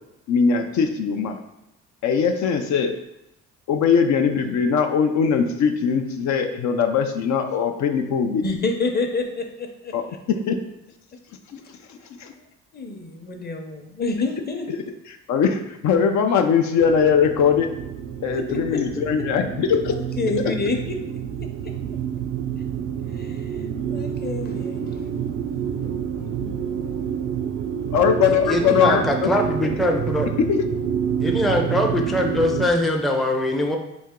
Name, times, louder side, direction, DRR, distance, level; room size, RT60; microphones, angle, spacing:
voice 1, 0.3-1.4 2.0-2.9 3.7-8.4 9.9-10.0 10.5-10.6 11.5-11.6 11.9-12.3 14.7-14.8 15.1-17.7 18.2-19.9 27.9-29.3 30.4-30.6, left 6 dB, 70° left, 5 dB, 0.5 m, -21 dB
voice 2, 8.4-9.9 12.7-14.8 18.3-18.8 20.2-20.9 23.2-23.6 23.9-24.9 26.3-26.8, left 3 dB, 30° left, 4 dB, 0.7 m, -28 dB
sound 1, 16.8-32.7, right 8 dB, 60° right, 0.4 m, -28 dB
voice 3, 28.2-30.3 31.2-33.8, left 1 dB, ahead, 1 dB, 0.4 m, -22 dB
4.2 x 2.8 x 3.6 m, 0.87 s
cardioid pair, 90°, 30 cm